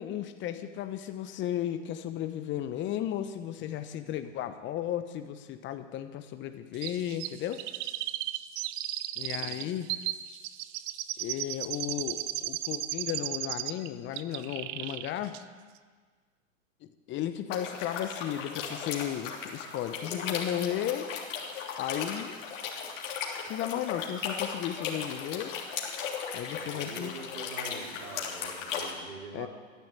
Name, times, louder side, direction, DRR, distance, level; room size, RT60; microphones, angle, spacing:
voice 1, 0.0-7.6 9.2-9.9 11.2-15.4 16.8-21.1 21.8-22.3 23.5-25.6 26.3-27.1 29.3-29.5, left 11 dB, 30° left, 10 dB, 0.9 m, -34 dB
Chirp tweet, 6.8-13.9 14.2-15.1 15.3-15.4, right 15 dB, 25° right, 0.4 m, -35 dB
sound 1, 17.5-28.9, left 6 dB, 65° left, 3.3 m, -37 dB
voice 2, 26.6-29.5, right 3 dB, 75° right, -2 dB, 4.8 m, -44 dB
14.0 x 10.5 x 8.0 m, 1.5 s
hypercardioid pair, 110°, 40 cm